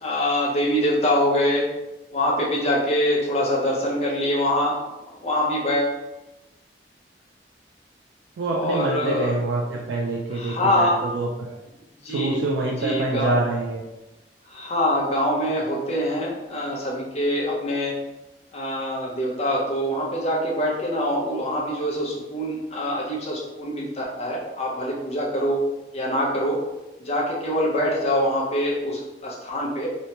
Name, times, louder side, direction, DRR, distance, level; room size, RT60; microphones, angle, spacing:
voice 1, 0.0-1.7 2.1-4.8 5.2-6.0 8.5-9.3 10.3-11.0 12.0-12.4 12.8-13.3 14.5-17.9 18.5-25.6 25.9-26.6 27.0-29.9, equal, 35° left, -4 dB, 0.5 m, -24 dB
voice 2, 8.4-11.6 12.1-13.8, right 2 dB, 90° right, -2 dB, 0.3 m, -26 dB
2.9 x 2.1 x 2.7 m, 1.0 s
head